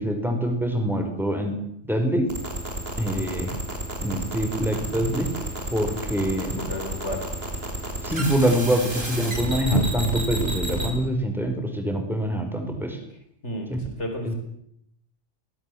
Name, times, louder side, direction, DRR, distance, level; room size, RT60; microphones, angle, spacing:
voice 1, 0.0-1.5 1.8-2.2 3.0-3.5 4.0-5.3 5.7-6.6 8.0-13.0 13.7-13.8 14.2-14.3, right 1 dB, ahead, 4 dB, 5.0 m, -25 dB
sound 1, 2.3-10.9, right 1 dB, 55° right, 5.5 m, -30 dB
sound 2, 4.5-9.8, left 4 dB, 55° left, 3.7 m, -38 dB
voice 2, 6.6-7.3 13.1-14.3, left 1 dB, 75° left, 4 dB, 4.9 m, -33 dB
24.5 x 19.0 x 8.0 m, 0.74 s
omnidirectional pair, 1.2 m